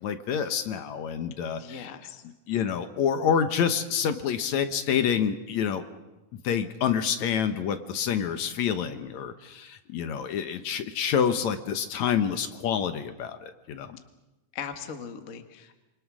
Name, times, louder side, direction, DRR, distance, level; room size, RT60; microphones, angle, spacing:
voice 1, 0.0-1.9 2.5-5.8 6.3-14.0, left 8 dB, 70° left, 9 dB, 2.3 m, -27 dB
voice 2, 1.6-2.2 14.5-15.7, left 7 dB, 40° left, 7 dB, 1.2 m, -39 dB
26.5 x 24.5 x 6.2 m, 1.0 s
omnidirectional pair, 3.6 m